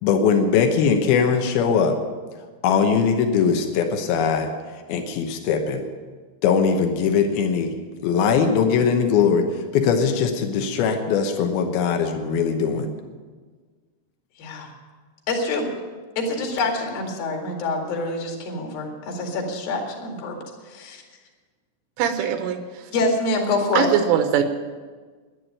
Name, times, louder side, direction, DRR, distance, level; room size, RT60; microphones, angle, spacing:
voice 1, 0.0-2.0 2.6-4.5 4.9-5.8 6.4-7.8 8.0-12.9, left 6 dB, 85° left, 5 dB, 2.1 m, -20 dB
voice 2, 15.3-15.7 16.2-20.4 20.7-21.0 22.9-23.9, left 2 dB, 55° left, 1 dB, 3.5 m, -26 dB
voice 3, 22.0-22.9 23.7-24.4, right 9 dB, 80° right, 8 dB, 3.4 m, -22 dB
11.5 x 11.0 x 8.9 m, 1.4 s
omnidirectional pair, 5.9 m